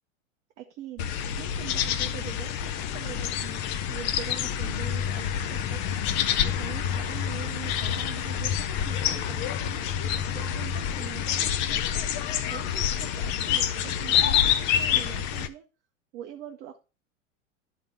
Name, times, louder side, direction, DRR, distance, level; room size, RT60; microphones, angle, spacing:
voice 1, 0.6-1.1 1.4-3.6 3.9-6.0 6.4-11.8 12.5-15.6 16.1-16.8, right 11 dB, 25° right, 4 dB, 0.7 m, -43 dB
sound 1, 1.0-15.5, left 9 dB, 30° left, 0.5 m, -27 dB
12.0 x 4.0 x 4.4 m, 0.31 s
figure-of-eight pair, 90°, 40 cm